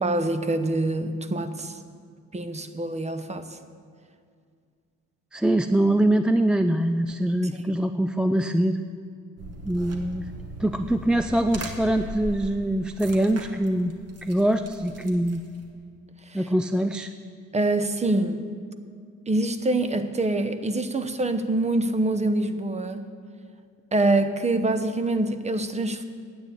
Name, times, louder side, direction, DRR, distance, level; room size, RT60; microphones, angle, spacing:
voice 1, 0.0-1.8 2.3-3.5 16.3-16.4 17.5-18.4 19.3-23.0 23.9-26.0, right 2 dB, 20° right, 10 dB, 0.8 m, -25 dB
voice 2, 5.3-8.8 9.7-10.3 10.6-13.9 14.2-15.4 16.3-17.1, right 1 dB, 5° right, 9 dB, 0.3 m, -23 dB
sound 1, 9.4-15.7, right 2 dB, 55° right, 1.6 m, -39 dB
9.5 x 8.4 x 9.1 m, 2.2 s
cardioid pair, 90°, 30 cm